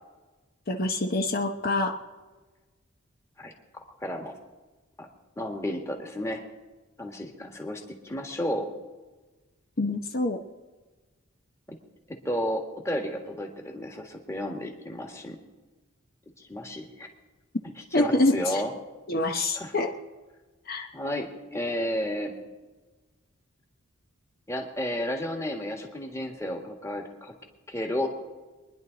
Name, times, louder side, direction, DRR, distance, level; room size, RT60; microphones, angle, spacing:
voice 1, 0.7-2.0 9.8-10.4 17.9-18.6 19.1-19.9 20.7-20.9, left 2 dB, 45° left, 4 dB, 0.8 m, -26 dB
voice 2, 3.4-4.3 5.0-5.1 5.4-6.4 7.0-8.7 11.7-11.8 12.1-15.4 16.4-17.1 17.9-18.7 19.5-19.7 20.9-22.4 24.5-27.3 27.7-28.1, equal, 15° left, 2 dB, 1.7 m, -32 dB
24.0 x 10.5 x 4.0 m, 1.2 s
head